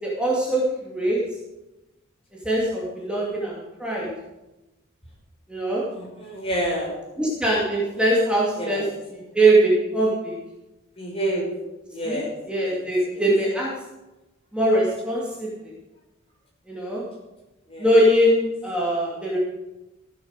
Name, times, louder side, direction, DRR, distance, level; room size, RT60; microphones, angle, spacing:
voice 1, 0.0-1.2 2.4-4.1 5.5-5.8 7.2-8.9 9.1-10.4 12.1-12.2 12.5-13.7 14.5-15.5 16.7-17.0 17.8-19.4, right 1 dB, 5° right, -6 dB, 2.5 m, -22 dB
voice 2, 5.9-7.0 8.6-8.8 11.0-11.5 11.9-12.3 12.6-12.8 13.1-13.2 17.7-17.9, right 1 dB, 30° left, -2 dB, 5.3 m, -29 dB
15.0 x 8.6 x 6.6 m, 1.0 s
head